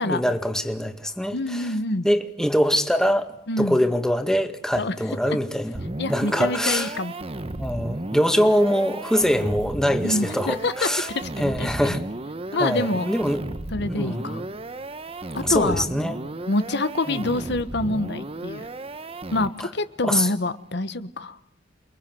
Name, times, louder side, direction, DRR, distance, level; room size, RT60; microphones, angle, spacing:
voice 1, 0.0-1.7 2.0-3.3 3.6-5.8 6.1-6.9 7.6-11.1 11.4-12.0 12.6-13.4 13.9-14.5 15.4-16.1 17.1-17.3 19.6-19.7 20.0-20.3, equal, 5° left, 2.0 m, -23 dB
voice 2, 1.3-2.1 3.5-3.8 4.8-5.0 5.3-5.4 6.0-7.1 10.0-12.0 12.5-13.1 13.7-14.4 15.3-15.8 16.5-18.7 19.3-21.4, left 2 dB, 65° left, 1.3 m, -26 dB
sound 1, 5.7-19.8, right 2 dB, 30° right, 1.2 m, -34 dB
29.0 x 22.5 x 7.9 m
head